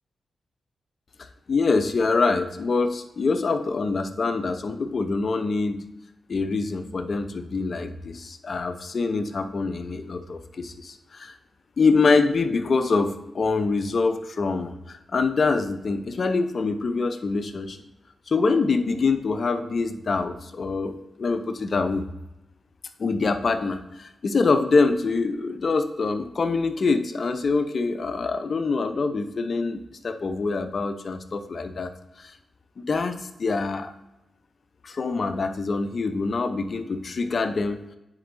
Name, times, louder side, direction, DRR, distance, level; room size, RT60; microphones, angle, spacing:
voice 1, 1.5-5.8 6.3-11.3 11.8-17.8 18.3-22.0 23.0-31.9 32.2-32.3 32.8-33.9 34.8-37.8, left 4 dB, 60° left, 9 dB, 0.7 m, -25 dB
9.9 x 4.5 x 2.6 m, 0.94 s
supercardioid pair, 45°, 0 cm